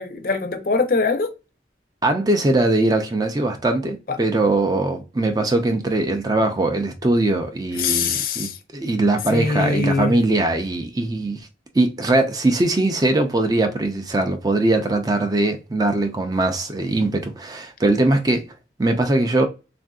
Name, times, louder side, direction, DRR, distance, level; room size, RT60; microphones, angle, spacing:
voice 1, 0.0-1.3 4.1-4.2 7.8-8.6 9.3-10.2, left 4 dB, 50° left, 0.5 m, -22 dB
voice 2, 2.0-8.5 8.7-11.4 11.7-18.4 18.8-19.5, right 2 dB, 20° right, 0.4 m, -21 dB
3.5 x 2.5 x 2.3 m
head